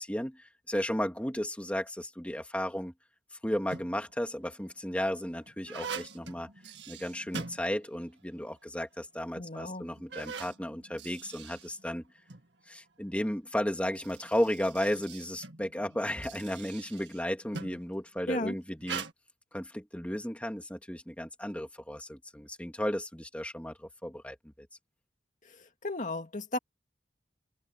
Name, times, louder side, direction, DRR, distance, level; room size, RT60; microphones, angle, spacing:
voice 1, 0.0-2.9 3.4-6.5 6.9-12.0 12.7-19.1 19.5-24.7, equal, 10° left, 2.3 m, -34 dB
sound 1, 3.5-4.1 4.8-8.2 8.5-8.6 9.3-9.4 9.9-12.5 13.7-17.9 18.8-19.1, right 5 dB, 85° right, 2.1 m, -43 dB
voice 2, 9.4-9.9 18.3-18.5 25.4-26.6, left 2 dB, 45° left, 2.4 m, -35 dB
open air
head